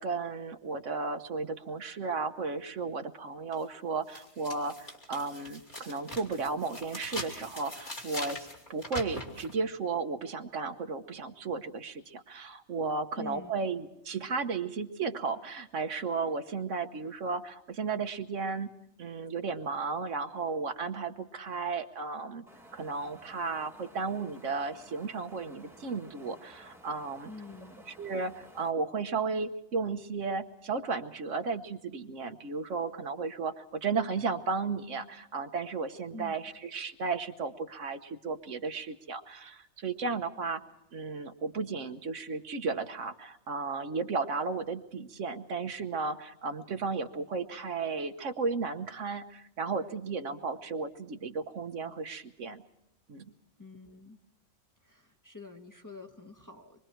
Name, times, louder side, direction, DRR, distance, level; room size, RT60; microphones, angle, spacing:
voice 1, 0.0-18.7 19.0-22.4 22.7-27.3 27.9-40.6 40.9-52.6 53.1-53.3, right 4 dB, 75° right, 7 dB, 1.4 m, -34 dB
sound 1, 3.5-3.6 4.1-9.5, left 1 dB, 40° left, 2.9 m, -42 dB
voice 2, 13.2-13.5 27.2-27.8 36.1-36.3 53.6-54.2 54.8-56.8, left 3 dB, 15° left, 1 dB, 1.3 m, -46 dB
Wind, 22.5-28.7, equal, ahead, 1.3 m, -55 dB
25.5 x 23.0 x 4.5 m, 0.79 s
omnidirectional pair, 1.3 m